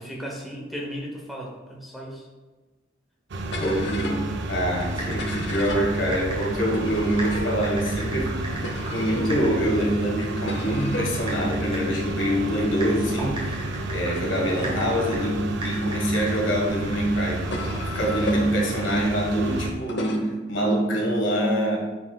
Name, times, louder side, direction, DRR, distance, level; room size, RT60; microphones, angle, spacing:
voice 1, 0.0-2.3 14.1-14.3, equal, ahead, -3 dB, 0.9 m, -36 dB
sound 1, 3.3-19.7, right 2 dB, 60° right, 0.5 m, -31 dB
sound 2, 3.5-16.1 16.7-20.2, left 1 dB, 65° left, 0.7 m, -37 dB
voice 2, 3.6-8.5 8.9-13.6 13.9-17.7 17.9-21.8, equal, 80° left, -1 dB, 1.5 m, -25 dB
Typing, 4.8-16.7, right 1 dB, 30° right, 1.5 m, -38 dB
9.6 x 4.2 x 2.3 m, 1.3 s
head